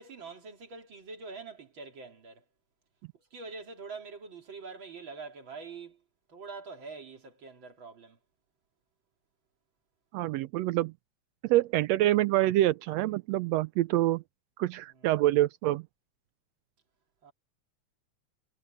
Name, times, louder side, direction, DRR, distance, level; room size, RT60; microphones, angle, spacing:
voice 1, 0.0-2.4 3.3-6.0 6.3-8.2 15.0-15.1 17.2-17.3, right 4 dB, 40° right, 3.6 m, -44 dB
voice 2, 10.1-10.9 11.4-14.2 14.6-15.8, right 15 dB, 80° right, 1.5 m, -26 dB
omnidirectional pair, 3.5 m